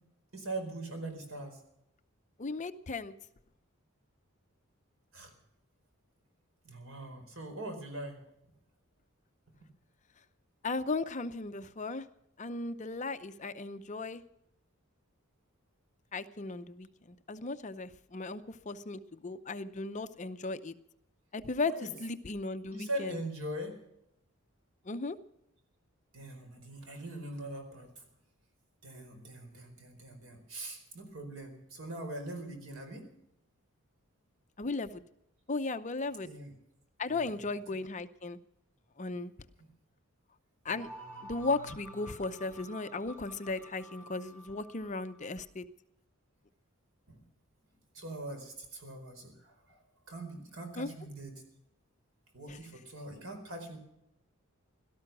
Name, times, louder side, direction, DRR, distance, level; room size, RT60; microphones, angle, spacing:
voice 1, 0.3-1.6 5.1-5.3 6.6-8.2 21.6-21.9 22.7-23.8 26.1-27.9 28.8-33.0 36.2-36.5 37.1-37.5 39.1-39.2 47.1-47.2 47.9-49.8 50.1-51.4 52.3-53.8, right 1 dB, 70° right, 5 dB, 4.6 m, -42 dB
voice 2, 2.4-3.1 10.6-12.0 12.4-14.2 16.1-16.9 17.3-20.7 21.3-23.2 24.9-25.2 34.6-35.0 35.5-36.3 37.0-38.4 39.0-39.3 40.6-40.9 41.2-45.6 50.8-50.9 52.5-52.6, left 3 dB, 35° left, 11 dB, 0.6 m, -36 dB
sound 1, 40.7-45.3, equal, 10° left, 4.0 m, -51 dB
17.5 x 13.0 x 6.1 m, 0.81 s
head